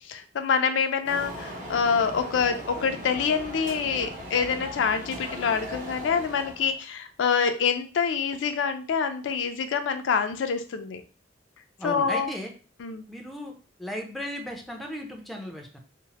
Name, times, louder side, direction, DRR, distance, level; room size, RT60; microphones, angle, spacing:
voice 1, 0.0-11.0 11.8-12.3 12.8-13.0, left 6 dB, 70° left, 8 dB, 0.4 m, -26 dB
sound 1, 1.0-6.8, equal, 45° right, 0.7 m, -38 dB
voice 2, 11.8-12.5 13.1-13.5 13.8-15.8, equal, ahead, 2 dB, 0.4 m, -36 dB
2.8 x 2.0 x 2.8 m, 0.36 s
head